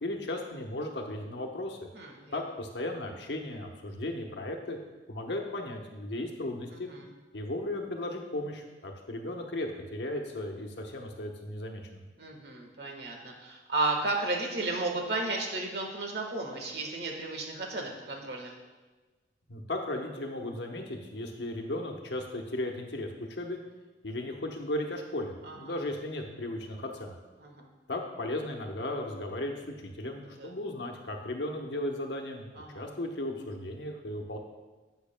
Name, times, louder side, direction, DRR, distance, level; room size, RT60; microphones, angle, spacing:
voice 1, 0.0-1.9 2.3-4.8 5.1-6.9 7.3-12.0 19.5-23.6 24.0-27.2 27.9-34.4, left 1 dB, 85° left, 2 dB, 1.0 m, -36 dB
voice 2, 1.9-2.3 6.7-7.0 12.2-18.6 25.4-25.7 27.4-27.7 30.4-30.5 32.6-32.9, right 2 dB, 70° right, 1 dB, 1.4 m, -34 dB
10.5 x 7.9 x 2.2 m, 1.2 s
head